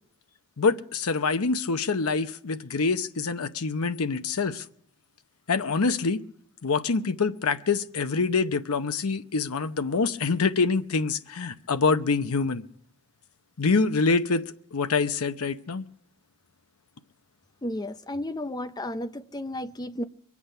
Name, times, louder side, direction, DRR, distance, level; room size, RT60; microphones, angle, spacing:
voice 1, 0.6-4.6 5.5-6.2 6.6-12.6 13.6-14.4 14.7-15.8, left 4 dB, 80° left, 0.8 m, -25 dB
voice 2, 17.6-20.0, left 1 dB, 20° left, 0.5 m, -33 dB
24.0 x 8.5 x 5.6 m
head